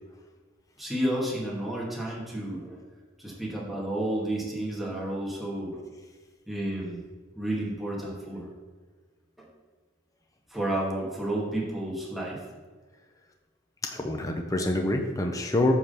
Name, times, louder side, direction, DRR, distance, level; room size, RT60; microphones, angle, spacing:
voice 1, 0.8-2.8 3.2-5.8 6.5-7.0 7.3-8.5 9.4-9.5 10.5-12.4, right 1 dB, ahead, -5 dB, 2.0 m, -31 dB
voice 2, 13.8-15.7, left 1 dB, 15° left, 2 dB, 0.7 m, -26 dB
9.2 x 3.8 x 6.8 m, 1.5 s
head